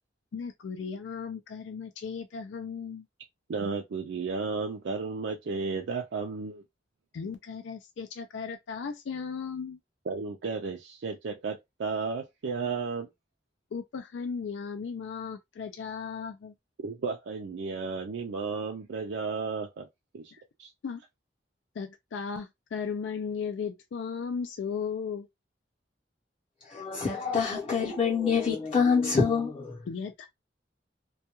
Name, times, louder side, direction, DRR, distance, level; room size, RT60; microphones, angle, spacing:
voice 1, 0.3-3.1 7.1-9.8 13.7-16.5 20.3-20.4 20.8-21.0 21.8-25.3 29.9-30.3, left 6 dB, 90° left, 0.4 m, -36 dB
voice 2, 3.5-6.6 10.1-13.1 16.8-19.9 20.1-20.3 20.6-20.7, right 4 dB, 75° right, 0.4 m, -33 dB
voice 3, 26.6-29.8, left 5 dB, 30° left, 0.7 m, -26 dB
2.2 x 2.2 x 2.9 m
head